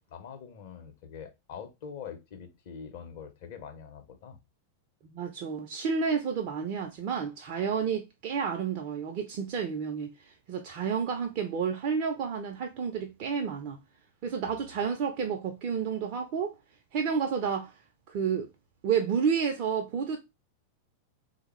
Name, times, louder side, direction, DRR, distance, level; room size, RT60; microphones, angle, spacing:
voice 1, 0.0-4.4 14.5-14.6, left 7 dB, 50° left, 0.6 m, -44 dB
voice 2, 5.0-10.1 10.5-13.8 14.2-16.5 16.9-17.7 18.1-18.5 18.8-20.2, right 6 dB, 45° right, 0.5 m, -30 dB
3.4 x 2.1 x 3.1 m
figure-of-eight pair, 90°, 0 cm